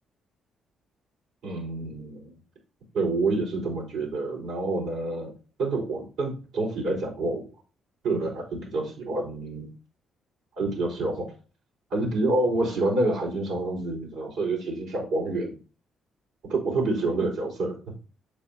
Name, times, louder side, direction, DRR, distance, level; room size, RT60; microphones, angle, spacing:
voice 1, 1.4-2.3 2.9-5.3 5.6-7.5 8.0-9.7 10.6-11.3 11.9-15.5 16.5-17.7, right 2 dB, 90° right, -2 dB, 4.7 m, -27 dB
8.6 x 7.4 x 2.8 m, 0.37 s
cardioid pair, 90°, 0 cm